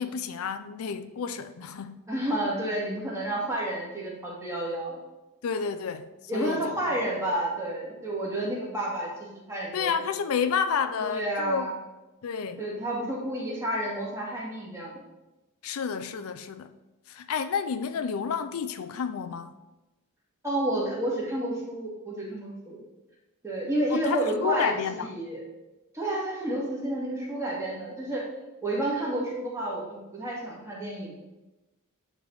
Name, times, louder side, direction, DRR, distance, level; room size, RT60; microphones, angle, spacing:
voice 1, 0.0-2.0 5.4-6.7 9.7-11.7 12.2-12.6 15.6-16.7 17.1-19.5 23.9-25.1, left 6 dB, 75° left, 11 dB, 0.4 m, -30 dB
voice 2, 2.1-5.0 6.3-9.1 9.5-9.9 11.0-11.7 12.6-15.0 20.4-22.8 23.4-25.4 25.9-28.2 28.6-31.1, right 1 dB, 15° right, -4 dB, 1.9 m, -30 dB
9.8 x 3.4 x 4.7 m, 1.0 s
head